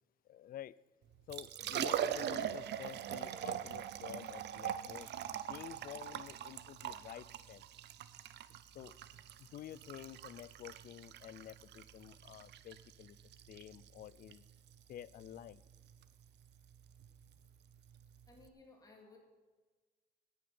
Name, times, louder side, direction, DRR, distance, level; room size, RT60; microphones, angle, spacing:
voice 1, 0.2-0.7 1.3-7.7 8.7-9.0 9.4-13.2 13.5-14.4 14.9-15.6, left 11 dB, 55° left, 21 dB, 0.4 m, -50 dB
Liquid, 1.1-18.5, right 10 dB, 80° right, 0.7 m, -43 dB
voice 2, 18.3-19.2, left 3 dB, 20° left, 0 dB, 2.5 m, -59 dB
17.5 x 6.6 x 6.9 m, 1.3 s
cardioid pair, 160°, 18 cm